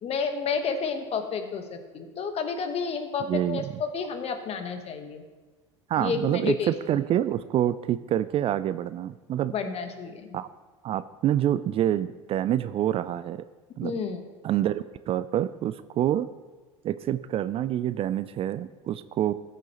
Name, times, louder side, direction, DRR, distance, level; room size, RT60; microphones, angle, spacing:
voice 1, 0.0-5.2 6.0-7.0 9.5-10.4 13.8-14.2, left 5 dB, 40° left, 7 dB, 1.2 m, -31 dB
voice 2, 3.3-3.6 5.9-9.5 10.3-10.5 10.8-13.4 13.8-13.9 14.4-16.3 16.8-19.3, right 11 dB, 40° right, 14 dB, 0.3 m, -27 dB
14.5 x 6.7 x 3.0 m, 1.3 s
hypercardioid pair, 75°, 15 cm